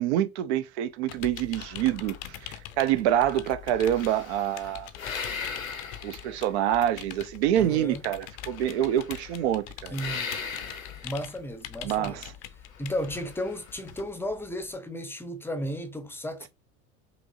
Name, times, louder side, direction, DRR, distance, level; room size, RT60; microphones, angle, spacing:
voice 1, 0.0-4.9 6.0-9.9 11.8-12.3, right 11 dB, 55° right, 0.7 m, -26 dB
sound 1, 1.1-14.8, left 12 dB, 40° left, 0.6 m, -44 dB
sound 2, 1.6-2.8 3.1-6.8 8.3-9.5 9.9-11.3 12.7-13.8, left 5 dB, 85° left, 0.8 m, -39 dB
voice 2, 7.5-8.1 9.9-10.4 11.0-12.2 12.8-16.5, equal, 5° left, 0.6 m, -34 dB
5.2 x 3.0 x 2.6 m
figure-of-eight pair, 75°, 40 cm